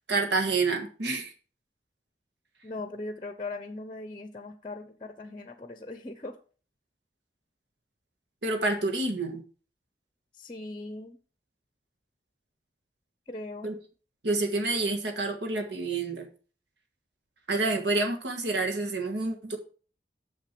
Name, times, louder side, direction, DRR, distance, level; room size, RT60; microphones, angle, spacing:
voice 1, 0.1-1.3 8.4-9.4 13.6-13.7 14.2-16.3 17.5-19.6, right 3 dB, 80° right, 3 dB, 1.6 m, -28 dB
voice 2, 2.6-6.4 10.4-11.2 13.3-13.8, left 2 dB, 25° left, 9 dB, 0.7 m, -39 dB
6.7 x 6.1 x 5.9 m, 0.39 s
head